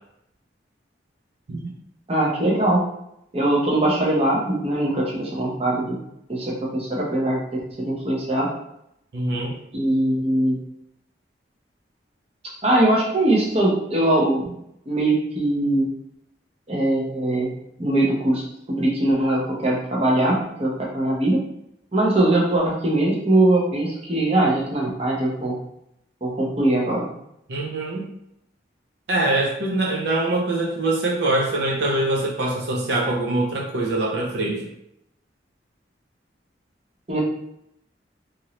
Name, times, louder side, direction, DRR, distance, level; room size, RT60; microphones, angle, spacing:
voice 1, 2.1-2.8 3.3-6.0 6.3-8.5 9.7-10.6 12.6-14.5 14.9-15.9 16.7-17.5 17.8-21.4 21.9-25.6 26.2-27.1 37.1-37.2, right 1 dB, 30° right, -3 dB, 0.7 m, -21 dB
voice 2, 9.1-9.5 27.5-28.1 29.1-34.6, right 2 dB, 65° right, -2 dB, 0.5 m, -23 dB
3.0 x 2.6 x 2.9 m, 0.78 s
head